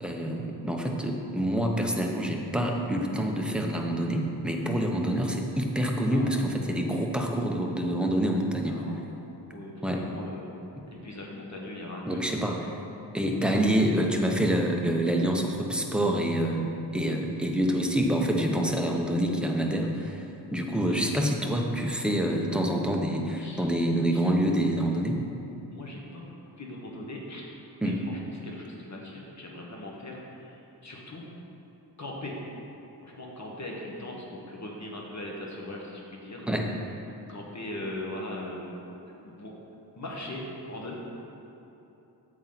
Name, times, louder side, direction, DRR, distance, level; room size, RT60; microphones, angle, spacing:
voice 1, 0.0-8.8 9.8-10.0 12.1-12.6 13.1-25.2 27.8-28.0 36.5-36.7, equal, ahead, 0 dB, 0.7 m, -27 dB
voice 2, 8.7-9.0 9.5-10.5 10.9-12.7 13.2-13.5 20.9-21.0 23.4-23.8 24.1-24.2 25.7-27.5 27.8-31.3 32.0-32.4 33.0-36.5 37.1-38.7 39.0-39.5 39.9-41.0, left 1 dB, 40° left, -2 dB, 1.4 m, -40 dB
8.6 x 7.1 x 4.0 m, 3.0 s
wide cardioid pair, 125°, 41 cm